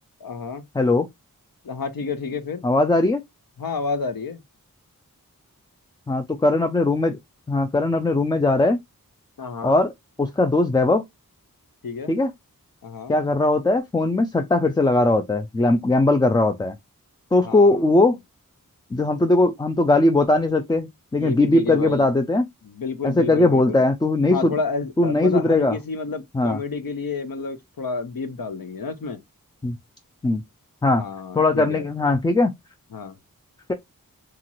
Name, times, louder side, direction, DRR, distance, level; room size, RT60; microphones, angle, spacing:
voice 1, 0.2-0.6 1.6-2.6 3.6-4.4 9.4-9.8 11.8-12.1 12.8-13.1 17.4-17.8 21.2-22.1 22.7-23.9 24.3-29.2 30.9-31.8 32.9-33.2, left 4 dB, 80° left, 0.7 m, -30 dB
voice 2, 0.7-1.1 2.6-3.2 6.1-7.2 7.5-8.8 9.6-9.9 10.2-11.0 12.1-12.3 13.1-16.7 17.3-18.2 18.9-22.4 23.0-24.5 25.0-25.8 26.3-26.6 29.6-29.8 30.2-30.4 30.8-31.0 31.3-32.5, left 2 dB, 15° left, 0.3 m, -19 dB
2.9 x 2.4 x 2.9 m
wide cardioid pair, 55°, 34 cm